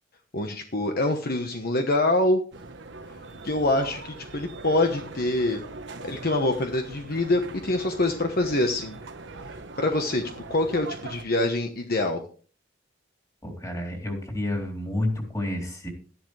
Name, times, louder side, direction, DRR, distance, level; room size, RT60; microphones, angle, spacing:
voice 1, 0.3-2.4 3.4-5.6 6.0-9.0 9.8-10.2 10.5-12.2, left 2 dB, 50° left, 5 dB, 1.1 m, -25 dB
sound 1, 2.5-11.2, right 3 dB, 65° right, 1.2 m, -41 dB
voice 2, 13.4-15.9, left 1 dB, 20° left, 2 dB, 3.7 m, -30 dB
13.0 x 11.0 x 3.3 m, 0.40 s
head